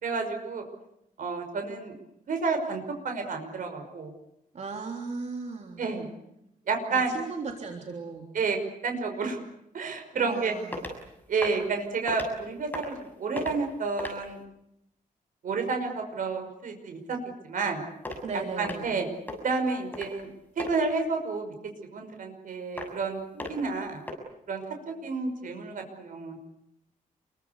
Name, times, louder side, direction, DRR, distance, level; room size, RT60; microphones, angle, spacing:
voice 1, 0.0-0.6 1.2-1.9 2.3-4.1 5.8-6.1 6.7-7.1 8.3-8.6 8.8-9.4 9.7-10.5 11.3-14.4 15.4-17.2 17.4-17.8 18.6-19.1 19.4-20.3 20.6-21.5 21.9-24.0 24.5-26.4, right 4 dB, 65° right, 4 dB, 5.7 m, -30 dB
voice 2, 4.5-5.9 6.9-8.3 10.1-10.9 18.2-19.0, right 4 dB, 50° right, 3 dB, 3.5 m, -37 dB
sound 1, 10.7-11.0 11.4-11.7 12.1-12.3 12.7-13.1 13.4-13.6 14.0-14.3 18.0-18.2 18.6-18.9 19.3-19.4 19.9-20.2 20.6-20.7 22.8-23.0 23.4-23.7 24.1-24.2, left 1 dB, 10° left, 6.8 m, -36 dB
29.5 x 23.0 x 8.3 m, 0.82 s
wide cardioid pair, 145°, 15 cm